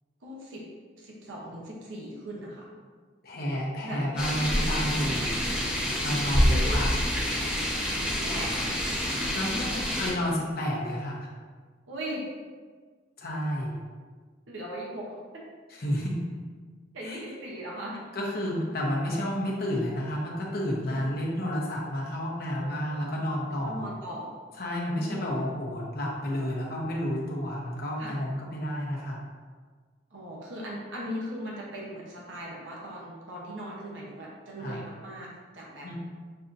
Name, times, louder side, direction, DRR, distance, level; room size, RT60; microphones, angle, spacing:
voice 1, 0.2-0.6 1.0-2.7 3.8-4.2 6.5-6.8 8.1-8.7 9.3-9.8 11.9-12.2 14.5-15.4 16.9-18.1 20.9-21.1 22.4-23.1 23.5-24.3 25.0-25.3 28.0-28.1 30.1-35.9, equal, 75° right, -4 dB, 0.9 m, -39 dB
voice 2, 3.2-5.3 6.0-7.0 9.3-9.5 9.9-11.3 13.2-13.8 15.8-16.2 17.0-17.2 18.1-23.8 24.6-29.2 34.6-34.8 35.8-36.0, equal, 50° left, -3 dB, 0.9 m, -30 dB
sound 1, 4.2-10.1, equal, 5° right, 0.6 m, -27 dB
6.6 x 2.7 x 2.6 m, 1.5 s
head